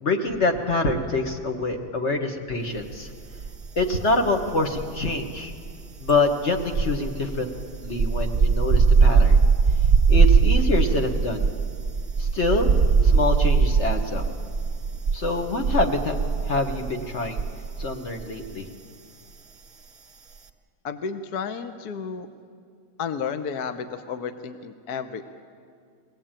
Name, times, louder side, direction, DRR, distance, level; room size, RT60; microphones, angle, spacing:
voice 1, 0.0-3.1 3.7-5.5 6.0-7.5 7.8-9.4 10.1-11.5 12.2-12.7 13.0-14.2 15.1-16.2 16.4-17.4 17.8-18.7, left 2 dB, 40° left, 4 dB, 1.4 m, -25 dB
sound 1, 3.3-4.1 4.4-17.9 18.2-18.5, right 5 dB, 30° right, 0.7 m, -21 dB
voice 2, 20.8-22.3 23.0-25.3, left 6 dB, 60° left, 10 dB, 1.2 m, -32 dB
22.0 x 17.0 x 8.9 m, 2.2 s
omnidirectional pair, 2.1 m